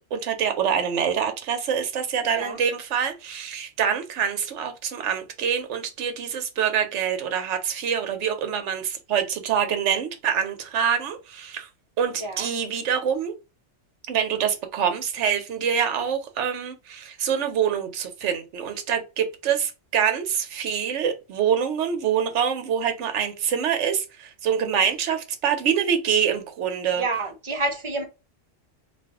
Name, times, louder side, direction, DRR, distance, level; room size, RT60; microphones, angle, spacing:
voice 1, 0.1-11.7 12.0-13.4 14.1-27.0, right 8 dB, 75° right, 1.0 m, -25 dB
voice 2, 27.0-28.0, right 2 dB, 35° right, 0.5 m, -28 dB
2.5 x 2.3 x 3.4 m
omnidirectional pair, 1.3 m